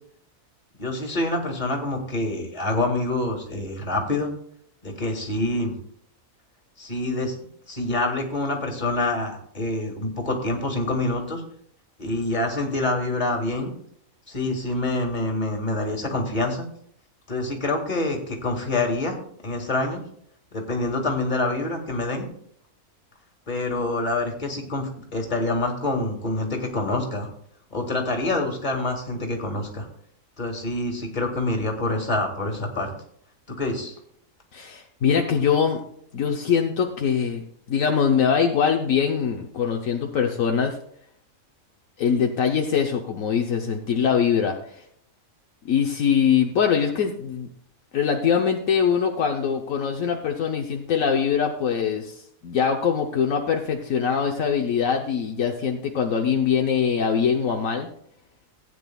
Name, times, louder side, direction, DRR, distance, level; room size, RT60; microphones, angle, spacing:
voice 1, 0.8-4.3 4.8-5.7 6.8-7.3 7.7-11.4 12.0-13.7 14.3-16.6 17.3-19.2 19.4-20.0 20.5-22.2 23.5-27.3 27.7-29.9 30.4-32.9 33.6-34.0, left 2 dB, 35° left, 2 dB, 2.1 m, -26 dB
voice 2, 34.5-35.8 36.1-37.4 37.7-40.8 42.0-44.6 45.6-47.5 47.9-52.2 52.4-57.9, left 7 dB, 75° left, 3 dB, 1.2 m, -23 dB
16.5 x 9.1 x 2.3 m, 0.66 s
omnidirectional pair, 1.4 m